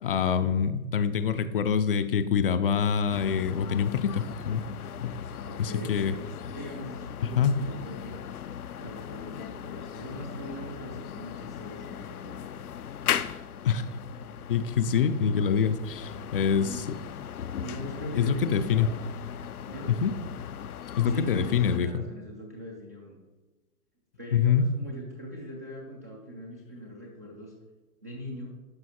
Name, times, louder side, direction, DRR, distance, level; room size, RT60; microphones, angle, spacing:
voice 1, 0.0-4.7 5.0-5.1 5.6-6.1 7.2-7.6 13.6-13.8 14.5-16.8 18.2-18.9 20.0-20.1 21.0-21.9 24.3-24.7, left 7 dB, 40° left, 10 dB, 0.5 m, -25 dB
sound 1, 3.1-21.8, left 9 dB, 80° left, 0.7 m, -38 dB
voice 2, 5.4-6.2 6.5-8.2 8.8-12.4 16.4-16.8 17.6-18.9 19.7-19.9 21.1-23.2 24.2-27.5 28.0-28.5, equal, 15° right, -3 dB, 0.4 m, -41 dB
11.5 x 5.7 x 4.3 m, 1.2 s
hypercardioid pair, 135°, 44 cm